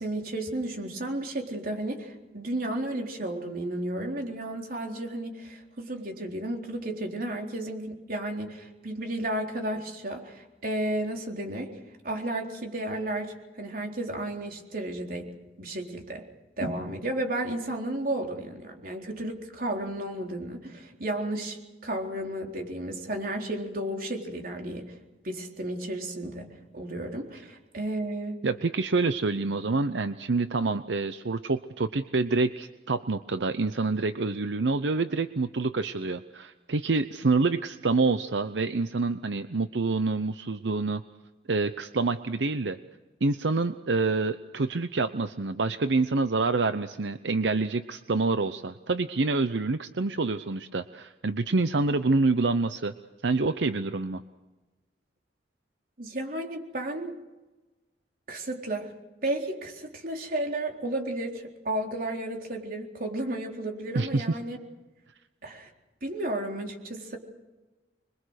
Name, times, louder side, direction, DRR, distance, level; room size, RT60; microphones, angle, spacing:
voice 1, 0.0-11.7 12.0-15.3 15.6-16.2 16.6-24.9 25.2-28.4 56.0-57.1 58.3-58.9 59.2-64.6 65.4-65.7 66.0-67.2, right 1 dB, 55° right, 1 dB, 4.0 m, -33 dB
voice 2, 28.4-41.0 41.5-42.8 43.2-52.9 53.2-54.2 63.9-64.3, right 3 dB, 90° right, 11 dB, 0.8 m, -27 dB
26.5 x 22.5 x 6.5 m, 1.1 s
head